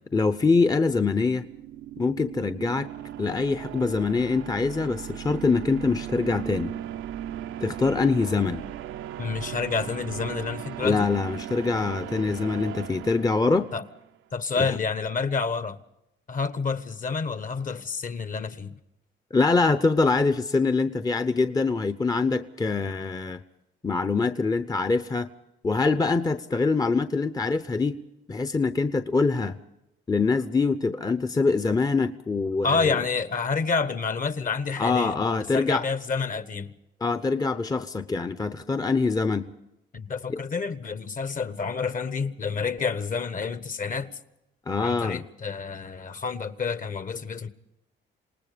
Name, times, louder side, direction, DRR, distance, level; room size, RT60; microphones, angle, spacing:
voice 1, 0.1-1.5 2.0-2.9 3.2-6.8 7.6-8.6 10.8-13.7 14.6-14.7 19.3-23.4 23.8-25.3 25.6-28.0 28.3-29.6 30.1-33.0 34.8-35.9 37.0-39.5 40.3-40.4 44.7-45.2, left 4 dB, 20° left, 0.8 m, -24 dB
sound 1, 1.1-14.0, right 11 dB, 80° right, 0.8 m, -37 dB
voice 2, 9.2-11.1 13.7-13.8 14.3-15.8 16.3-18.7 32.6-35.2 35.5-36.7 39.9-44.1 44.8-47.5, left 5 dB, 40° left, 1.3 m, -29 dB
27.5 x 19.0 x 5.1 m
cardioid pair, 90°, 20 cm